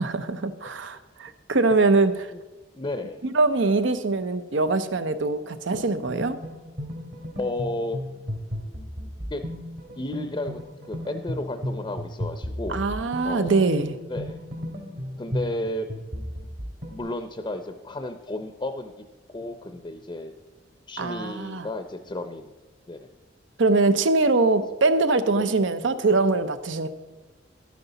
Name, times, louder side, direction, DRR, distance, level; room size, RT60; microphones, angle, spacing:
voice 1, 0.0-2.3 3.3-6.4 12.7-14.0 21.0-21.7 23.6-26.9, right 3 dB, 90° right, 11 dB, 0.7 m, -23 dB
voice 2, 2.7-3.2 7.4-8.0 9.3-9.4 10.0-12.9 13.2-13.7 14.1-14.4 15.2-15.9 16.9-20.3 20.9-22.5 22.9-23.1 25.3-25.5, left 1 dB, 25° left, 7 dB, 0.5 m, -33 dB
sound 1, 5.7-17.0, equal, 65° right, 2.8 m, -35 dB
12.0 x 9.6 x 4.0 m, 1.2 s
head